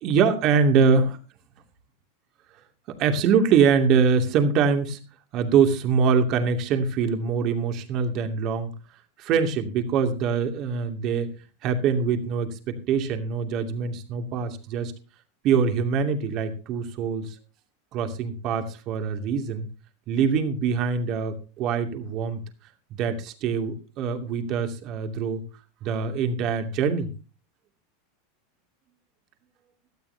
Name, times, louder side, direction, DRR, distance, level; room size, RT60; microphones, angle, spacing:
voice 1, 0.0-1.2 3.0-5.0 5.3-8.7 9.2-11.3 11.6-14.9 15.4-17.3 17.9-19.7 20.1-22.4 23.0-25.4 25.8-27.1, right 6 dB, 45° right, 6 dB, 2.6 m, -23 dB
17.5 x 12.5 x 2.8 m, 0.34 s
supercardioid pair, 125°, 0 cm